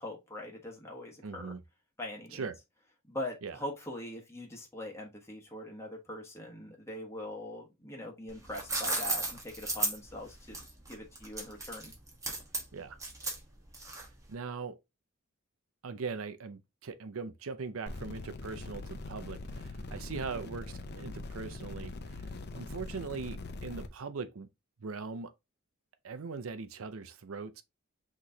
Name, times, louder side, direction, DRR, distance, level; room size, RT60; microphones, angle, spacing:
voice 1, 0.0-1.5 2.0-2.4 3.1-10.6 10.9-11.9 20.1-20.4, left 1 dB, 15° left, 1.2 m, -42 dB
voice 2, 1.2-1.6 2.3-2.6 3.4-3.6 12.7-13.0 14.3-14.8 15.8-24.5 24.8-25.3 26.0-27.6, right 4 dB, 80° right, 0.6 m, -40 dB
sound 1, 8.3-14.3, right 2 dB, 15° right, 1.3 m, -35 dB
sound 2, 17.9-23.9, left 2 dB, 50° left, 0.6 m, -42 dB
5.9 x 3.1 x 2.7 m
head